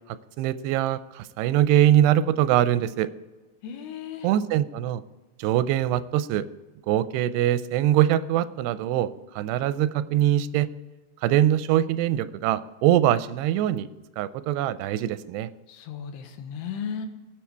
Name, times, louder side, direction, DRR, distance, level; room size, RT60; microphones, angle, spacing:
voice 1, 0.4-3.1 4.2-5.0 5.4-6.5 6.9-10.7 11.2-13.9 14.2-15.5, right 12 dB, 90° right, 14 dB, 2.7 m, -23 dB
voice 2, 3.6-4.3 15.7-17.1, left 7 dB, 80° left, 6 dB, 3.1 m, -35 dB
19.0 x 6.6 x 4.6 m, 1.2 s
omnidirectional pair, 4.7 m